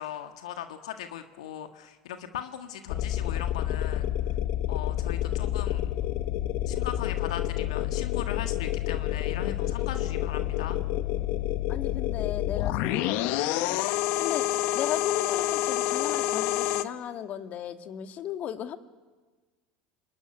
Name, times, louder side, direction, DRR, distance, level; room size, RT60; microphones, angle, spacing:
voice 1, 0.0-4.1 4.7-5.9 6.7-10.8, left 10 dB, 80° left, 7 dB, 1.6 m, -39 dB
sound 1, 2.9-16.8, left 13 dB, 65° left, 1.2 m, -28 dB
voice 2, 11.7-13.8 14.2-18.8, left 10 dB, 50° left, 8 dB, 2.0 m, -36 dB
27.0 x 20.0 x 10.0 m, 1.3 s
hypercardioid pair, 90°, 3 cm